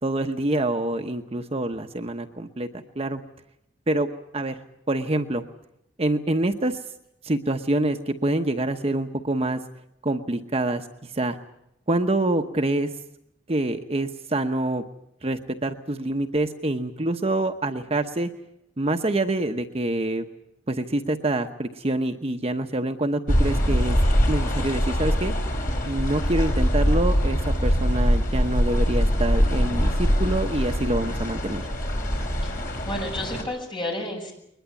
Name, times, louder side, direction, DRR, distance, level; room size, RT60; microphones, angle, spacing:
voice 1, 0.0-3.2 3.9-4.1 4.3-4.6 4.9-5.4 6.0-6.8 7.2-9.6 10.0-11.4 11.9-12.9 13.5-14.8 15.2-18.3 18.8-20.2 20.7-24.0 24.3-25.3 25.9-31.7, right 2 dB, 35° right, 5 dB, 1.0 m, -26 dB
sound 1, 23.3-33.4, equal, 50° left, 5.4 m, -23 dB
voice 2, 32.8-34.3, left 1 dB, 25° left, 1 dB, 7.0 m, -31 dB
22.0 x 20.5 x 8.4 m, 0.78 s
head